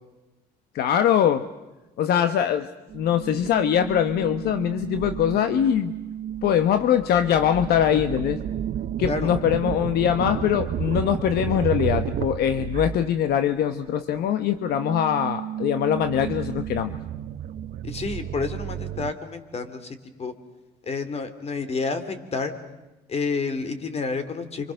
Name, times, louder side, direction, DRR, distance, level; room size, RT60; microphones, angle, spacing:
voice 1, 0.7-1.4 2.0-2.7 2.9-5.9 6.4-8.4 9.0-16.9, left 9 dB, 70° left, 10 dB, 1.1 m, -22 dB
sound 1, 2.9-13.6 14.0-19.1, right 10 dB, 60° right, 0.9 m, -32 dB
voice 2, 17.8-20.3 20.8-22.5 23.1-24.7, left 4 dB, 40° left, 11 dB, 3.0 m, -29 dB
29.5 x 25.5 x 6.5 m, 1.1 s
cardioid pair, 110°, 17 cm